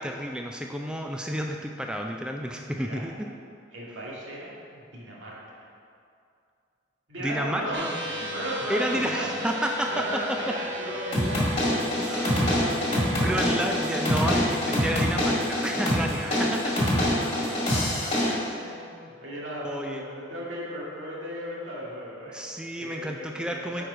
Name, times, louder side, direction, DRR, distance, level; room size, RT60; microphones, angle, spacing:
voice 1, 0.0-3.3 7.2-7.9 8.7-10.6 12.0-12.4 13.1-16.7 18.2-18.7 19.6-20.0 22.3-23.8, equal, 5° right, 2 dB, 0.3 m, -31 dB
voice 2, 3.7-5.6 7.1-14.4 16.2-16.6 17.0-17.4 17.7-18.3 18.6-22.5 22.8-23.8, equal, 85° right, -5 dB, 1.9 m, -36 dB
sound 1, 7.7-20.3, left 1 dB, 65° right, 0.8 m, -38 dB
sound 2, 11.1-18.3, left 1 dB, 30° left, 1.8 m, -25 dB
9.0 x 4.7 x 4.9 m, 2.4 s
head